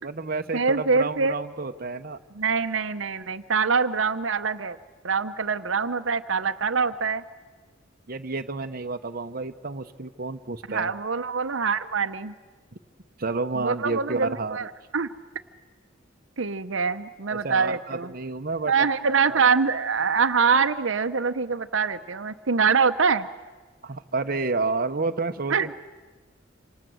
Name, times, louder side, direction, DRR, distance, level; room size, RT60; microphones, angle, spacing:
voice 1, 0.0-2.2 8.1-10.9 13.2-14.7 17.3-18.9 19.3-19.4 23.8-25.7, right 3 dB, 50° right, 6 dB, 0.9 m, -30 dB
voice 2, 0.5-1.3 2.3-4.8 5.0-7.2 10.7-12.3 13.6-14.7 14.9-15.1 16.4-18.1 18.7-23.3 25.5-25.7, right 5 dB, 75° right, 9 dB, 0.9 m, -24 dB
27.0 x 26.0 x 7.8 m, 1.3 s
head